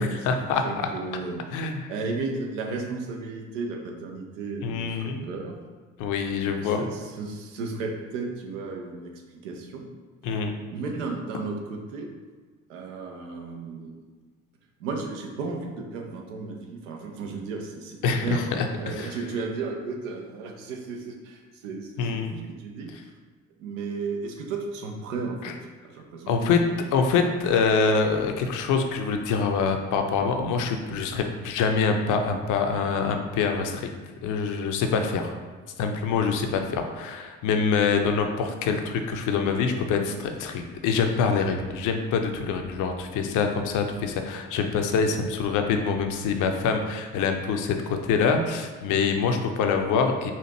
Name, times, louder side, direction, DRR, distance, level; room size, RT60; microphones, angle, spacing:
voice 1, 0.0-0.9 1.5-1.8 4.6-5.2 6.0-6.9 10.2-10.6 18.0-19.2 22.0-22.3 25.4-25.5 26.3-26.6 26.9-33.9 34.2-35.4 35.8-50.3, left 5 dB, 55° left, 5 dB, 0.5 m, -25 dB
voice 2, 0.6-5.6 6.4-9.9 10.2-10.4 10.7-12.1 12.7-13.9 14.8-22.9 23.6-25.5 25.8-26.6, right 4 dB, 80° right, 2 dB, 0.6 m, -34 dB
4.2 x 2.5 x 2.8 m, 1.4 s
hypercardioid pair, 50°, 37 cm